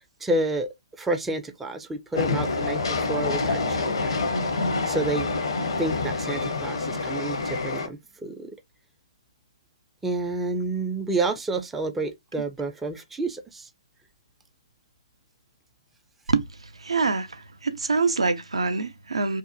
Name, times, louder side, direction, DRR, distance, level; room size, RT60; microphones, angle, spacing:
voice 1, 0.2-0.7 1.0-4.3 4.9-5.3 5.8-8.6 10.0-13.7, right 2 dB, 5° right, 0.3 m, -29 dB
Train, 2.1-7.9, left 3 dB, 60° left, 0.6 m, -27 dB
voice 2, 16.8-19.4, right 4 dB, 75° right, 0.4 m, -25 dB
2.7 x 2.0 x 2.5 m
figure-of-eight pair, 130°, 3 cm